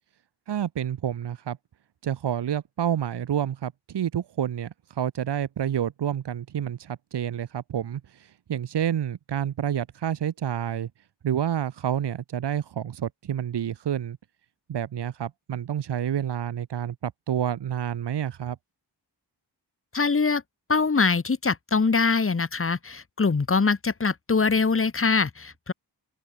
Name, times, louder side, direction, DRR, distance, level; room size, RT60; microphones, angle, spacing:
voice 1, 0.5-1.6 2.0-10.9 11.2-14.2 14.7-18.6, right 9 dB, 80° right, 1.1 m, -29 dB
voice 2, 19.9-20.4 20.7-25.7, left 4 dB, 30° left, 2.2 m, -23 dB
open air
wide cardioid pair, 175°, 41 cm